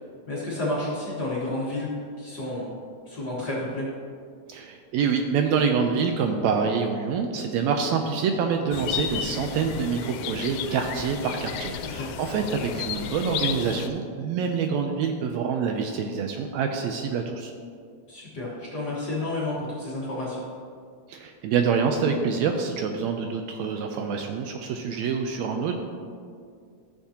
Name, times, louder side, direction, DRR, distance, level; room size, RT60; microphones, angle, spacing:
voice 1, 0.3-2.7 3.1-3.9 11.7-12.2 18.1-20.4, left 2 dB, 45° left, -7 dB, 1.5 m, -31 dB
voice 2, 4.5-17.5 21.1-25.7, right 6 dB, 80° right, 4 dB, 1.7 m, -26 dB
sound 1, 8.7-13.9, left 9 dB, 85° left, 2.0 m, -33 dB
14.0 x 7.1 x 2.8 m, 2.2 s
omnidirectional pair, 3.4 m